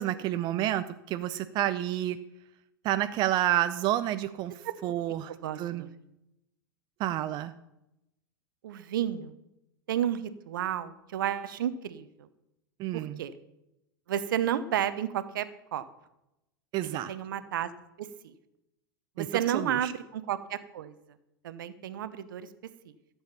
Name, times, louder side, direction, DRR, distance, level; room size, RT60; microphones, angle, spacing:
voice 1, 0.0-2.2 2.8-4.5 4.8-5.3 5.6-5.8 7.0-7.5 12.8-13.2 16.7-17.1 19.2-19.3 19.5-19.9, right 13 dB, 40° right, 12 dB, 0.5 m, -29 dB
voice 2, 5.3-5.9 8.6-9.3 9.9-12.1 12.9-13.3 14.1-15.8 16.8-17.7 18.0-18.3 19.2-20.9 21.4-22.5, right 10 dB, 70° right, 14 dB, 0.9 m, -32 dB
13.5 x 7.3 x 5.7 m, 0.90 s
hypercardioid pair, 90°, 12 cm